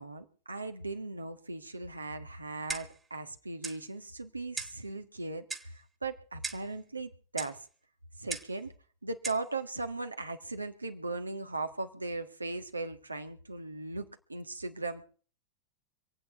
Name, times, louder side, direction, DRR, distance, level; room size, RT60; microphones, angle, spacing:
voice 1, 0.0-7.7 8.2-8.7 9.0-15.0, right 3 dB, 80° right, 8 dB, 1.5 m, -38 dB
Clock, 2.7-3.1 3.6-3.8 4.6-4.8 5.5-5.8 6.4-6.7 7.4-7.6 8.3-8.6 9.2-9.5, right 4 dB, 15° right, 1.7 m, -38 dB
26.0 x 8.9 x 4.5 m, 0.42 s
figure-of-eight pair, 90°, 0 cm